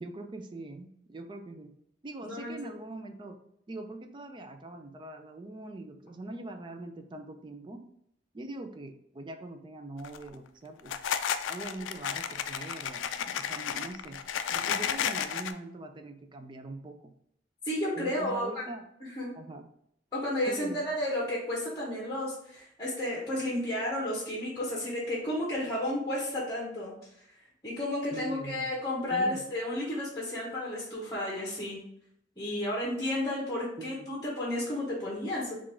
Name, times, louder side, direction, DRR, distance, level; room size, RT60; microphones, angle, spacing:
voice 1, 0.0-1.7 2.0-3.4 3.7-7.8 8.3-11.0 11.5-14.2 14.5-17.1 18.0-18.8 19.4-19.7 20.5-20.8 28.1-28.7 29.1-29.4 33.8-34.1, right 2 dB, 25° right, 6 dB, 0.4 m, -42 dB
voice 2, 2.2-2.5 17.6-18.7 19.0-19.3 20.1-26.9 27.6-31.8 32.4-35.5, left 1 dB, 20° left, -4 dB, 0.9 m, -32 dB
sound 1, 10.0-10.3 10.8-15.5, left 8 dB, 90° left, 0.3 m, -32 dB
4.0 x 2.5 x 4.3 m, 0.74 s
head